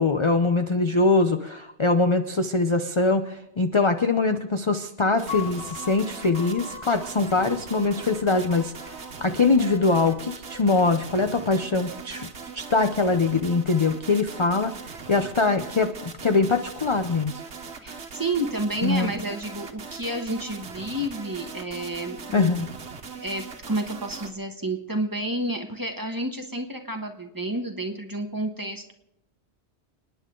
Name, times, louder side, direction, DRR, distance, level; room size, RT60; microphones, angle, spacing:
voice 1, 0.0-8.9 9.2-12.3 12.5-17.4 17.9-18.0 18.8-19.1 22.3-22.7, left 3 dB, 35° left, 7 dB, 0.6 m, -23 dB
sound 1, 5.2-24.3, right 5 dB, 75° right, 1.5 m, -40 dB
Piano, 5.3-11.5, left 7 dB, 80° left, 2.4 m, -42 dB
voice 2, 17.8-22.5 23.1-28.9, right 1 dB, 20° right, 4 dB, 1.4 m, -30 dB
29.5 x 10.0 x 3.8 m, 0.85 s
omnidirectional pair, 1.1 m